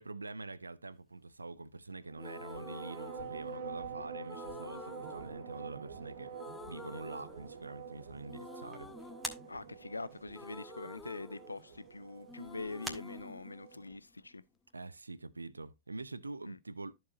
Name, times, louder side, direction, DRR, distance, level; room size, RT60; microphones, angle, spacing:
voice 1, 0.0-6.4 6.7-8.9 14.7-16.9, right 3 dB, 80° right, 0.5 m, -45 dB
sound 1, 2.1-14.0, right 6 dB, 60° right, 1.2 m, -47 dB
sound 2, 2.2-3.8 4.3-6.0 6.3-7.9 8.3-12.0 12.3-14.3, left 4 dB, 15° left, 0.4 m, -51 dB
sound 3, 6.6-13.8, right 1 dB, 5° right, 1.9 m, -50 dB
voice 2, 9.5-14.4 16.4-16.6, left 3 dB, 80° left, 0.3 m, -44 dB
13.5 x 4.7 x 2.6 m
figure-of-eight pair, 90°, 0 cm